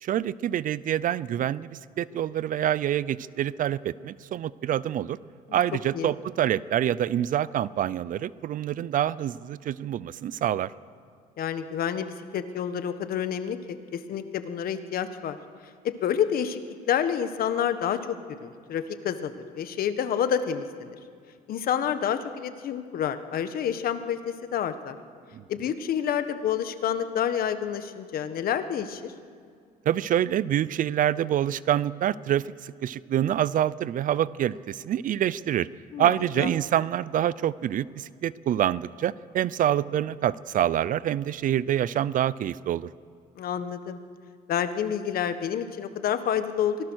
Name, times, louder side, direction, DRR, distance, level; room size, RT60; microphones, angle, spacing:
voice 1, 0.0-5.2 5.5-10.7 25.3-25.4 29.9-35.7 36.0-42.9, right 11 dB, 50° right, 20 dB, 0.5 m, -26 dB
voice 2, 11.4-15.4 16.0-16.6 16.9-18.1 18.4-20.9 21.5-25.0 25.5-29.1 35.9-36.5 43.4-44.0 44.5-46.8, left 9 dB, 60° left, 10 dB, 1.4 m, -28 dB
24.0 x 18.0 x 6.4 m, 2.2 s
cardioid pair, 110°, 17 cm